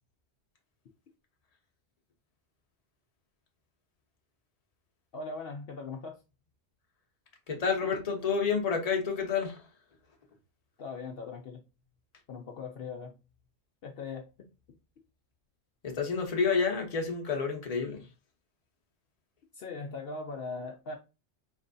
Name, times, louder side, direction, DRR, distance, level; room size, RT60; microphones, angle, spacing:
voice 1, 5.1-6.2 10.8-11.6 12.3-13.2 13.8-14.3 19.5-21.0, left 4 dB, 65° left, 0.8 m, -39 dB
voice 2, 7.5-9.6 15.8-18.0, left 5 dB, 40° left, 0.8 m, -29 dB
4.3 x 3.1 x 2.6 m
omnidirectional pair, 1.1 m